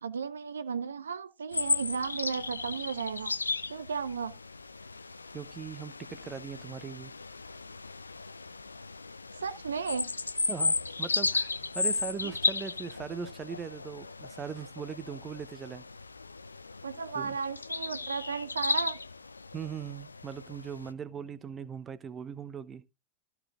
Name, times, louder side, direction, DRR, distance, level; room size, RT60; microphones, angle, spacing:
voice 1, 0.0-3.3 3.7-4.4 9.4-10.1 12.2-12.3 16.8-19.0, right 5 dB, 70° right, 0.6 m, -34 dB
sound 1, 1.5-20.9, left 3 dB, 80° left, 0.5 m, -35 dB
voice 2, 5.3-7.1 10.5-11.5 11.7-15.8 17.1-17.4 19.5-22.8, right 7 dB, 20° right, 0.8 m, -40 dB
14.0 x 4.8 x 3.8 m
figure-of-eight pair, 90°, 0 cm